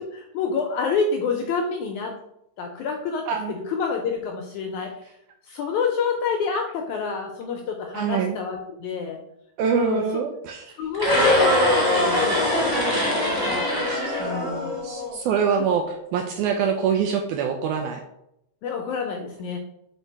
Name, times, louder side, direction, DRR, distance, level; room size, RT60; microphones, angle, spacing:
voice 1, 0.3-2.1 2.6-4.9 5.5-9.2 9.7-10.2 10.8-13.9 14.2-14.8 18.6-19.6, left 5 dB, 80° left, 3 dB, 1.7 m, -28 dB
voice 2, 7.9-8.4 9.6-10.9 13.9-14.2 14.8-18.0, right 7 dB, 80° right, 4 dB, 1.8 m, -25 dB
sound 1, 10.9-15.1, left 1 dB, 30° right, 0.4 m, -22 dB
5.0 x 4.5 x 4.5 m, 0.81 s
omnidirectional pair, 4.0 m